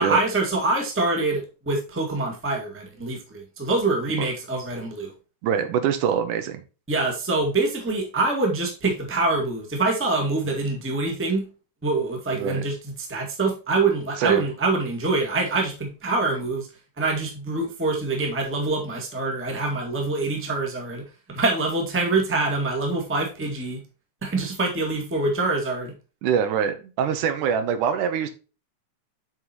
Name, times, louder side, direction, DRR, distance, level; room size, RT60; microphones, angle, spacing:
voice 1, 0.0-5.1 6.9-11.5 11.8-16.7 17.0-23.8 24.2-25.9, right 3 dB, 5° right, 1.1 m, -25 dB
voice 2, 5.4-6.6 12.4-12.6 14.2-14.4 26.2-28.3, right 8 dB, 80° right, 2.4 m, -24 dB
8.1 x 5.6 x 2.9 m
omnidirectional pair, 3.6 m